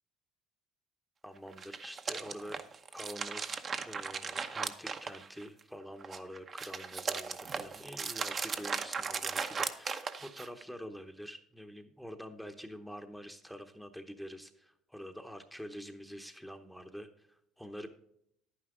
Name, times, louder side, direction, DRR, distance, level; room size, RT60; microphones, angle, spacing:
voice 1, 1.2-2.6 2.9-17.9, equal, ahead, 6 dB, 0.9 m, -46 dB
sound 1, 1.5-5.6 6.0-10.6, right 5 dB, 40° right, 0.8 m, -37 dB
10.5 x 9.6 x 3.7 m, 0.71 s
supercardioid pair, 95°, 0 cm